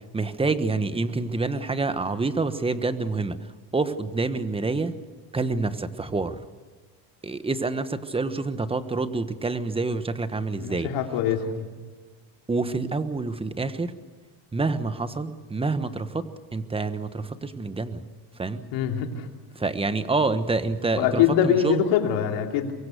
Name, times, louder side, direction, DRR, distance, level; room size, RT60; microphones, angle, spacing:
voice 1, 0.1-5.0 5.3-6.4 7.2-10.9 12.5-14.0 14.5-18.0 18.4-18.7 19.5-21.8, right 3 dB, 10° right, 12 dB, 1.1 m, -27 dB
voice 2, 10.6-11.6 18.7-19.3 20.9-22.7, left 9 dB, 70° left, 3 dB, 3.1 m, -23 dB
23.5 x 23.5 x 6.6 m, 1.4 s
cardioid pair, 120°, 47 cm